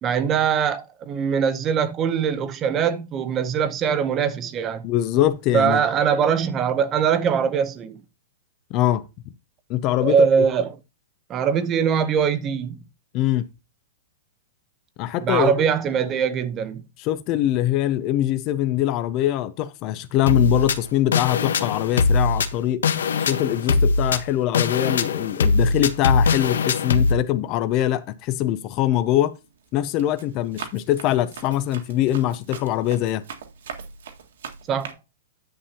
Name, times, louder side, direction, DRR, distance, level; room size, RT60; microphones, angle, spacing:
voice 1, 0.0-4.8 5.5-8.0 10.0-10.7 11.3-12.8 15.2-16.8 34.7-35.0, right 7 dB, 15° right, 0.6 m, -22 dB
voice 2, 4.8-5.8 8.7-9.1 9.7-10.3 13.1-13.5 15.0-15.5 17.0-22.8 23.2-29.3 29.7-33.2, left 13 dB, 25° left, 0.5 m, -23 dB
sound 1, 20.3-27.1, left 4 dB, 85° left, 1.0 m, -21 dB
Run, 28.8-29.2 29.7-34.9, right 6 dB, 65° right, 1.7 m, -40 dB
10.0 x 7.3 x 2.8 m
hypercardioid pair, 175°, 0 cm